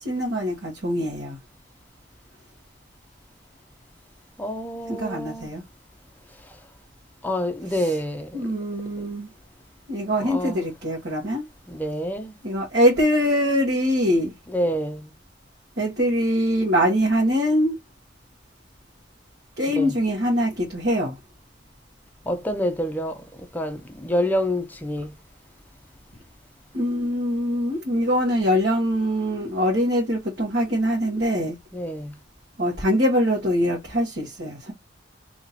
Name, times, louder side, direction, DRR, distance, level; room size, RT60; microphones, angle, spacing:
voice 1, 0.0-1.4 4.9-5.6 8.3-9.3 9.9-11.4 12.4-14.3 15.8-17.7 19.6-21.2 26.7-31.6 32.6-34.7, equal, 60° right, 1.4 m, -23 dB
voice 2, 4.4-5.5 7.2-8.5 9.0-9.1 10.2-10.7 11.7-12.4 14.5-15.1 19.7-20.0 22.3-25.1 31.7-32.2, equal, 10° left, 0.6 m, -27 dB
2.9 x 2.9 x 3.9 m
head